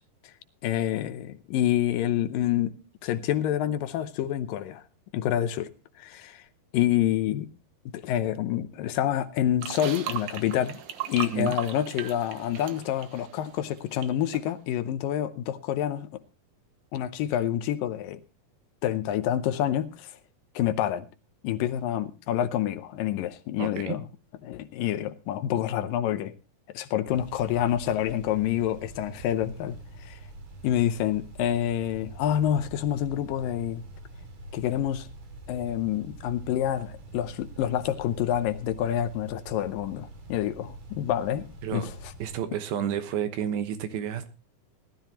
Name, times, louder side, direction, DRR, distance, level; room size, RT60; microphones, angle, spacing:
voice 1, 0.6-2.8 3.0-4.8 5.1-5.7 6.0-6.4 6.7-7.5 7.9-10.8 11.1-16.2 16.9-18.2 18.8-20.1 20.6-21.1 21.4-24.0 24.4-26.3 26.7-30.2 30.6-33.8 34.5-35.1 35.5-41.9, left 11 dB, 75° left, 2.4 m, -27 dB
sound 1, 9.6-14.1 14.3-14.5, right 10 dB, 65° right, 2.4 m, -37 dB
voice 2, 23.6-24.0 41.6-41.9 42.2-44.3, right 9 dB, 85° right, 3.1 m, -30 dB
sound 2, 27.1-42.4, right 2 dB, 50° right, 3.4 m, -45 dB
19.0 x 12.5 x 2.9 m
omnidirectional pair, 4.2 m